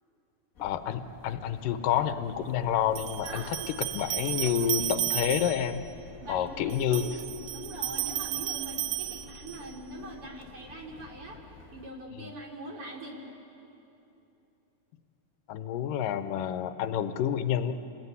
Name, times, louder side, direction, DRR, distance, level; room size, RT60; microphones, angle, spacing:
sound 1, 0.5-11.9, left 6 dB, 50° left, 1.0 m, -50 dB
voice 1, 0.6-3.6 3.9-5.9 6.3-7.1 12.2-12.3 15.5-17.7, left 9 dB, 85° left, 10 dB, 2.5 m, -29 dB
sound 2, 1.7-1.8 3.0-5.8 6.7-9.8, right 15 dB, 75° right, 1.8 m, -34 dB
voice 2, 3.2-3.7 4.2-4.9 6.2-11.4 11.7-13.2, right 2 dB, 40° right, -1 dB, 3.7 m, -42 dB
27.5 x 19.0 x 9.6 m, 2.9 s
omnidirectional pair, 3.9 m